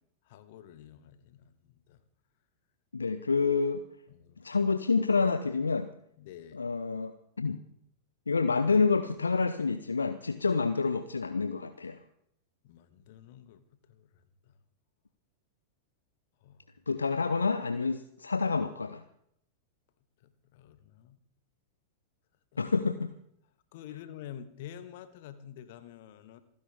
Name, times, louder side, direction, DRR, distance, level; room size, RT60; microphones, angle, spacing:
voice 1, 0.2-2.0 4.1-4.4 6.2-6.6 12.6-14.1 14.4-14.5 16.4-16.6 20.2-21.2 22.5-22.7 23.7-26.4, left 10 dB, 50° left, 12 dB, 1.5 m, -48 dB
voice 2, 2.9-3.8 4.4-5.9 6.5-7.6 8.3-12.0 16.9-19.0 22.6-23.1, left 4 dB, 75° left, 11 dB, 0.7 m, -28 dB
27.0 x 10.5 x 3.5 m, 0.69 s
figure-of-eight pair, 90°, 0 cm